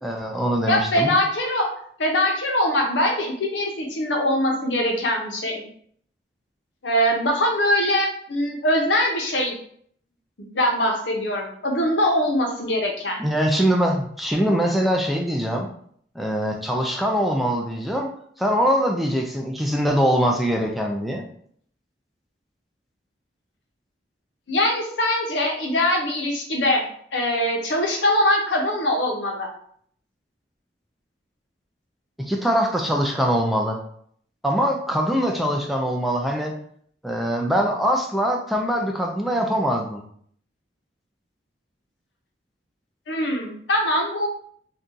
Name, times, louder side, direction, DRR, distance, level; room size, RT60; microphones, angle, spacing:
voice 1, 0.0-1.1 13.2-15.7 16.2-18.1 18.4-21.3 32.2-33.8 34.4-36.5 37.0-40.0, equal, ahead, 1 dB, 0.4 m, -23 dB
voice 2, 0.7-1.7 2.0-5.7 6.8-9.5 10.5-13.2 24.5-26.8 27.1-29.5 43.1-44.3, left 1 dB, 85° left, 1 dB, 0.8 m, -22 dB
2.7 x 2.3 x 3.7 m, 0.62 s
head